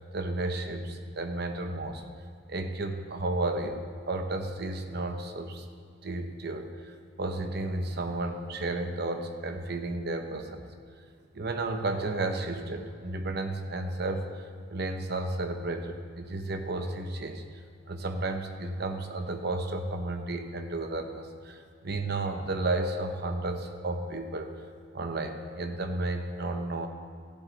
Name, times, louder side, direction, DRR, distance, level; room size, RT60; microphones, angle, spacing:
voice 1, 0.1-2.0 2.5-5.7 6.0-10.6 11.3-17.4 17.9-24.6 24.9-26.9, right 2 dB, 55° right, 6 dB, 0.8 m, -33 dB
15.0 x 7.8 x 3.3 m, 2.2 s
head